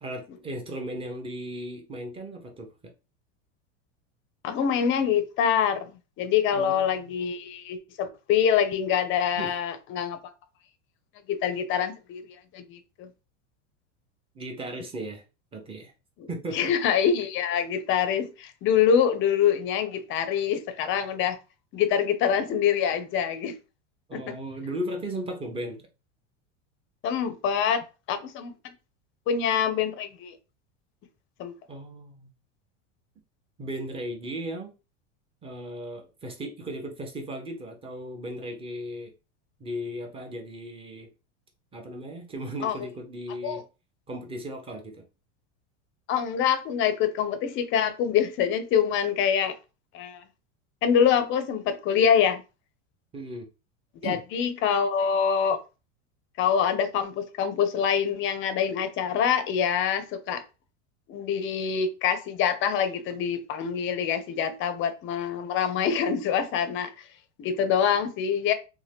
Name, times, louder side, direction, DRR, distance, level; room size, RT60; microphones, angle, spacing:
voice 1, 0.0-2.7 6.5-7.1 9.3-9.5 14.3-15.2 15.5-15.9 16.3-16.7 24.1-25.8 31.7-32.3 33.6-34.7 35.4-39.1 39.6-41.1 41.7-43.6 44.1-45.0 53.1-53.5 54.0-54.2, right 1 dB, 15° right, 0.7 m, -36 dB
voice 2, 4.4-5.9 6.2-10.2 11.3-12.2 12.5-13.1 16.5-21.4 21.7-23.5 27.0-28.7 29.3-30.3 31.4-31.5 42.6-42.7 43.4-43.6 46.1-49.5 49.9-50.2 50.8-52.4 54.0-55.6 56.4-60.4 61.1-66.9 67.4-68.5, left 8 dB, 35° left, 0.5 m, -25 dB
2.8 x 2.2 x 3.3 m
supercardioid pair, 130°, 37 cm